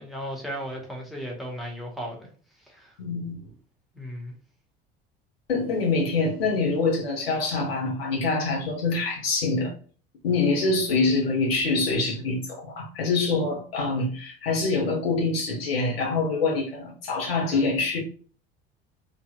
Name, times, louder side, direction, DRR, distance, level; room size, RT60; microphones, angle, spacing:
voice 1, 0.0-2.3 2.6-2.9 3.9-4.3, equal, ahead, 2.0 m, -35 dB
voice 2, 3.0-3.3 5.5-9.7 10.2-18.0, left 3 dB, 70° left, 1.8 m, -25 dB
5.3 x 3.6 x 2.6 m
figure-of-eight pair, 65°, 30 cm